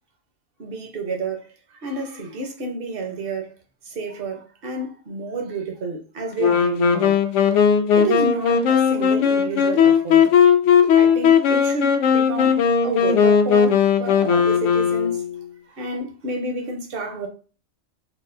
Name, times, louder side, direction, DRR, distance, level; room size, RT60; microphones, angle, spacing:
voice 1, 0.6-3.5 3.8-7.2 7.9-10.3 10.9-15.2 15.7-17.3, right 3 dB, 50° right, 1.0 m, -30 dB
Wind instrument woodwind instrument, 6.4-15.4, left 7 dB, 70° left, 0.8 m, -17 dB
4.1 x 2.4 x 2.6 m
omnidirectional pair, 1.4 m